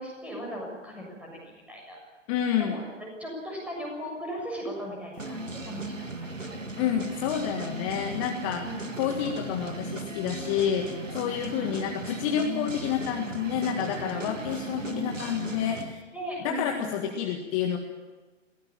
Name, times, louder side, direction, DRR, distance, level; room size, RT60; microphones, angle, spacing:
voice 1, 0.0-2.0 2.6-6.3 8.6-8.7 11.1-11.8 14.1-15.0 16.1-17.0, equal, 5° right, -1 dB, 6.9 m, -38 dB
voice 2, 2.3-2.8 6.8-8.7 9.0-16.0 16.4-17.8, left 9 dB, 25° left, 3 dB, 1.8 m, -29 dB
sound 1, 5.2-15.9, right 2 dB, 85° right, 2.1 m, -37 dB
22.5 x 17.0 x 8.8 m, 1.3 s
figure-of-eight pair, 125°, 37 cm